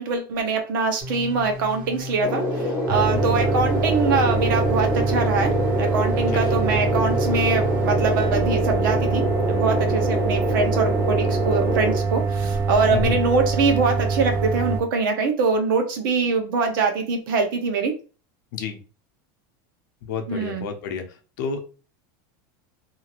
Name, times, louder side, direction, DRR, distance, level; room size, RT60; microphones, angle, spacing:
voice 1, 0.0-9.2 9.5-17.9 20.3-20.7, right 4 dB, 75° right, 5 dB, 0.8 m, -23 dB
sound 1, 1.0-8.3, left 3 dB, 55° right, 1.5 m, -35 dB
sound 2, 2.2-12.0, left 1 dB, 15° left, 0.8 m, -26 dB
sound 3, 2.9-14.8, right 4 dB, 20° right, 0.3 m, -24 dB
voice 2, 6.3-6.7 12.9-13.2 18.5-18.8 20.0-21.0 21.4-21.6, left 6 dB, 65° left, 5 dB, 0.6 m, -30 dB
2.7 x 2.5 x 3.0 m, 0.34 s
supercardioid pair, 175°, 11 cm